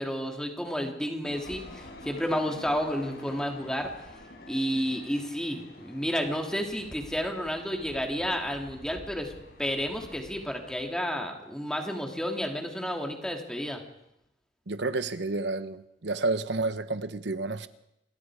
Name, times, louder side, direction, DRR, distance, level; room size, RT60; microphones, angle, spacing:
voice 1, 0.0-3.9 4.5-9.3 9.6-13.8, equal, 5° left, 2.8 m, -31 dB
sound 1, 1.2-10.9, left 1 dB, 65° left, 5.0 m, -48 dB
voice 2, 14.7-17.7, right 3 dB, 80° right, 1.0 m, -30 dB
27.0 x 21.0 x 4.9 m
head